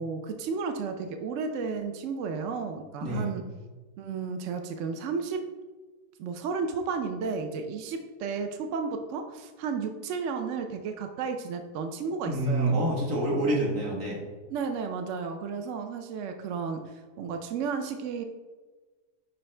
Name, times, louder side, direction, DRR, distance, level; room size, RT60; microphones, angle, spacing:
voice 1, 0.0-3.4 4.0-5.5 6.2-12.8 14.5-18.2, right 5 dB, 70° right, 6 dB, 0.7 m, -33 dB
voice 2, 3.0-3.3 12.3-14.2, right 1 dB, 50° right, -2 dB, 1.9 m, -27 dB
10.0 x 3.9 x 3.3 m, 1.3 s
omnidirectional pair, 1.8 m